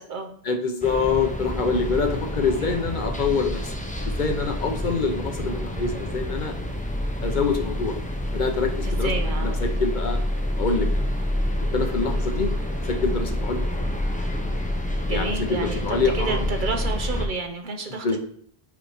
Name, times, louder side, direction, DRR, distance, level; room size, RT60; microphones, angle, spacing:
voice 1, 0.4-3.7 4.0-6.5 7.2-7.9 8.3-9.1 9.4-10.2 10.6-11.1 11.7-12.5 12.9-13.6 15.1-16.4 17.9-18.2, left 4 dB, 55° left, 5 dB, 0.8 m, -25 dB
sound 1, 0.8-17.3, left 1 dB, 10° left, 0.6 m, -27 dB
voice 2, 8.8-9.6 15.0-18.2, right 3 dB, 55° right, 3 dB, 1.0 m, -30 dB
5.1 x 4.5 x 4.9 m, 0.62 s
omnidirectional pair, 1.0 m